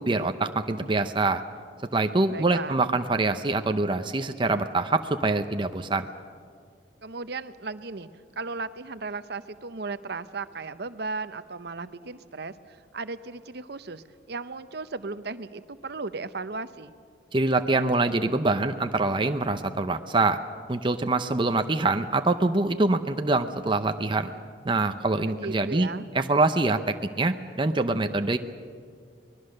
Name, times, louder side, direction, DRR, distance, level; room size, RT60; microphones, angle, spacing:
voice 1, 0.0-1.4 1.9-6.1 17.3-20.4 20.7-24.3 24.6-25.9 26.1-28.4, right 2 dB, 25° right, 7 dB, 0.7 m, -25 dB
voice 2, 2.3-2.8 7.0-8.1 8.4-16.9 25.3-26.1, right 3 dB, 60° right, 13 dB, 0.8 m, -36 dB
24.5 x 20.0 x 6.6 m, 2.1 s
head